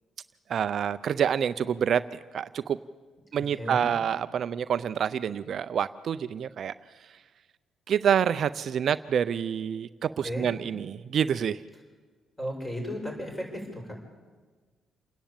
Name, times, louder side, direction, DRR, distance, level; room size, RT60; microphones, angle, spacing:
voice 1, 0.5-2.8 3.3-6.7 7.9-11.6, right 8 dB, 60° right, 13 dB, 0.5 m, -27 dB
voice 2, 12.4-13.9, equal, 15° left, 1 dB, 7.6 m, -34 dB
28.5 x 10.5 x 8.9 m, 1.4 s
cardioid pair, 90°, 0 cm